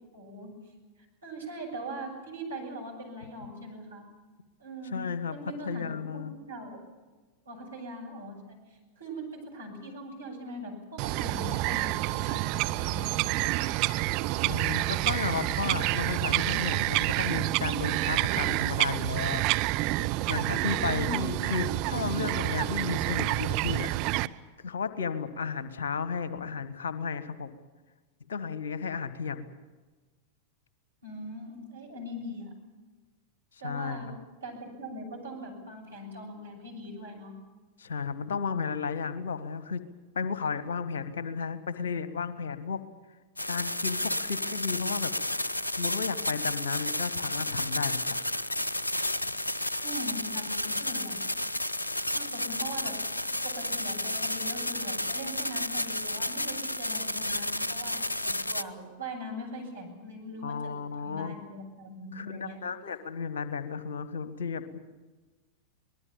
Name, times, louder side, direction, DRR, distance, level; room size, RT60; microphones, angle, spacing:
voice 1, 0.1-0.5 1.2-4.0 4.6-5.0 5.3-6.8 7.5-8.6 9.0-13.6 20.7-21.4 31.0-32.5 33.6-34.1 34.4-37.3 49.8-51.2 52.1-53.0 53.4-60.5 61.0-62.6, equal, 75° right, 0 dB, 7.5 m, -41 dB
voice 2, 4.9-6.3 14.4-19.5 20.3-23.9 24.6-27.5 28.3-29.5 33.6-34.2 37.8-39.8 40.1-42.8 43.5-45.1 45.7-48.2 49.2-49.3 60.4-61.4 62.1-64.8, left 5 dB, 65° left, 13 dB, 1.5 m, -33 dB
Bird vocalization bird call bird song, 11.0-24.3, right 18 dB, 45° right, 0.7 m, -28 dB
sound 1, 43.4-58.6, left 1 dB, 80° left, 0.8 m, -32 dB
24.0 x 20.0 x 7.3 m, 1.3 s
figure-of-eight pair, 90°, 0 cm